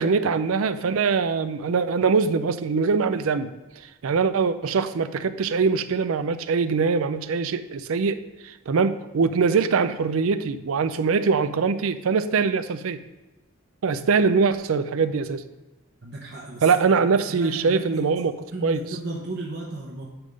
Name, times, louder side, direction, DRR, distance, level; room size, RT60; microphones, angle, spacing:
voice 1, 0.0-3.5 4.0-13.0 13.8-15.4 16.6-18.3 18.6-18.8, right 5 dB, 80° right, 12 dB, 0.5 m, -23 dB
voice 2, 16.0-18.1 18.5-20.0, right 2 dB, 55° right, -2 dB, 0.9 m, -35 dB
9.9 x 3.6 x 5.1 m, 1.1 s
head